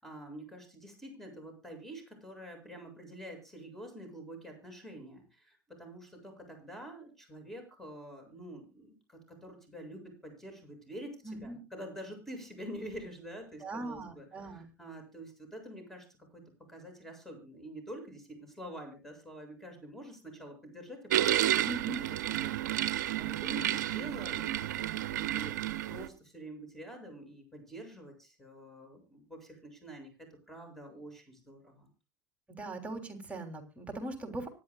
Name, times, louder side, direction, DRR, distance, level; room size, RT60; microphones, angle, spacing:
voice 1, 0.0-11.2 11.4-16.1 16.3-16.4 16.7-21.7 22.2-30.1 30.5-31.9, right 1 dB, 5° left, 4 dB, 7.7 m, -47 dB
voice 2, 11.2-11.6 13.6-14.7 21.6-22.1 32.6-34.5, right 2 dB, 15° right, 4 dB, 3.4 m, -40 dB
sound 1, 21.1-26.1, right 13 dB, 70° right, 0.7 m, -31 dB
25.0 x 10.5 x 2.4 m, 0.30 s
hypercardioid pair, 80°, 10 cm